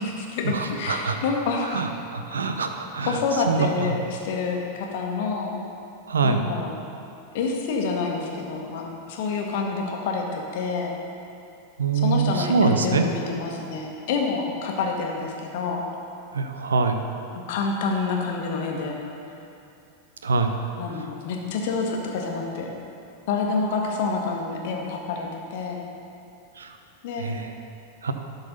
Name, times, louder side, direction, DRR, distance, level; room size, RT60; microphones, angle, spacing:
voice 1, 0.0-1.8 2.5-2.6 3.0-5.6 6.2-6.8 7.3-10.9 11.9-15.9 17.3-19.0 20.8-22.7 23.3-25.8 27.0-27.3, left 4 dB, 50° left, 0 dB, 1.2 m, -28 dB
voice 2, 0.5-1.2 1.7-3.2 3.5-4.0 6.1-6.4 11.8-13.0 16.3-17.0 20.2-20.6 26.6-26.7 27.2-27.5 28.0-28.1, right 4 dB, 70° right, 6 dB, 0.6 m, -24 dB
11.5 x 4.0 x 5.4 m, 2.8 s
figure-of-eight pair, 90°, 0 cm